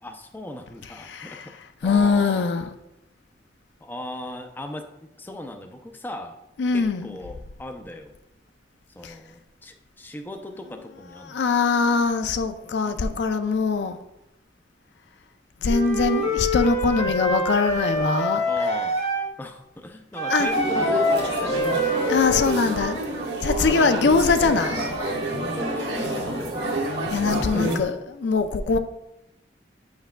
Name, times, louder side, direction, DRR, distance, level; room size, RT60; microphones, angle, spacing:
voice 1, 0.0-1.6 1.8-2.5 3.8-6.4 6.7-8.1 8.9-11.4 12.8-13.3 16.0-16.3 18.4-19.0 19.4-22.1 25.6-26.8 27.4-27.9, left 1 dB, 10° left, 0.4 m, -38 dB
voice 2, 1.1-1.5 1.8-2.7 6.6-7.2 9.0-9.1 11.3-14.0 15.6-18.5 20.3-20.5 22.1-24.9 27.1-27.9 28.2-28.8, left 4 dB, 70° left, 0.4 m, -22 dB
Wind instrument woodwind instrument, 15.7-19.3 20.1-22.7, left 1 dB, 35° left, 1.0 m, -25 dB
sound 1, 20.5-27.8, right 1 dB, 65° right, 1.2 m, -28 dB
8.6 x 5.7 x 2.2 m
head